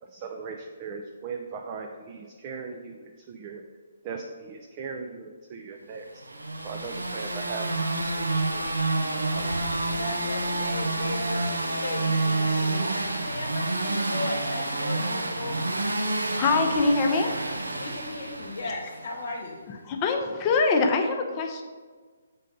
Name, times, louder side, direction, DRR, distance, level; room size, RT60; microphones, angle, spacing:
voice 1, 0.0-3.6 4.0-6.1 6.6-8.2 8.5-8.7 9.1-9.5, right 4 dB, 30° right, 2 dB, 0.5 m, -39 dB
sound 1, 6.2-19.1, right 2 dB, 85° right, 0.7 m, -28 dB
voice 2, 9.9-15.6 17.8-19.6, left 2 dB, 60° left, 1 dB, 1.0 m, -37 dB
voice 3, 16.4-17.3 19.9-21.6, left 3 dB, 30° left, 3 dB, 0.7 m, -23 dB
6.4 x 3.7 x 5.2 m, 1.5 s
figure-of-eight pair, 135°, 0 cm